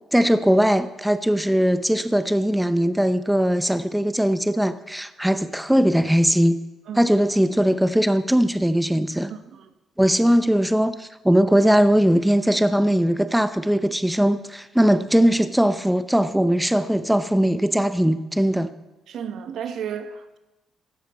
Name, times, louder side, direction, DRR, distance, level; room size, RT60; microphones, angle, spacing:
voice 1, 0.1-6.6 7.0-9.3 10.0-18.7, equal, 5° right, 11 dB, 0.6 m, -20 dB
voice 2, 9.3-9.7 19.1-20.4, right 8 dB, 75° right, 9 dB, 1.0 m, -33 dB
16.0 x 12.5 x 4.2 m, 1.0 s
cardioid pair, 90°, 0 cm